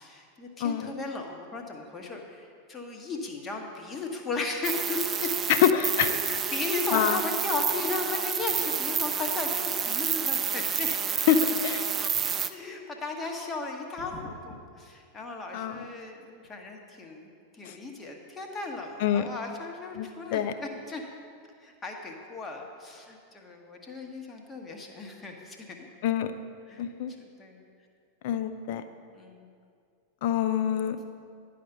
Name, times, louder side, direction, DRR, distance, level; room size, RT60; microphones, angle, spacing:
voice 1, 0.0-5.3 6.1-11.2 12.0-12.1 12.5-21.0 21.6-25.6 26.7-26.9 27.2-27.6 29.1-29.5, left 3 dB, 20° left, 2 dB, 1.1 m, -36 dB
voice 2, 0.6-0.9 5.6-6.2 6.9-7.2 11.3-11.9 15.5-15.8 17.7-17.8 19.0-19.3 20.0-20.1 20.3-20.5 26.0-26.3 26.8-27.1 28.2-28.8 30.2-31.0, left 9 dB, 50° left, 10 dB, 0.5 m, -25 dB
sound 1, 4.6-12.5, right 7 dB, 25° right, 0.4 m, -29 dB
10.5 x 5.0 x 5.7 m, 2.3 s
figure-of-eight pair, 90°, 0 cm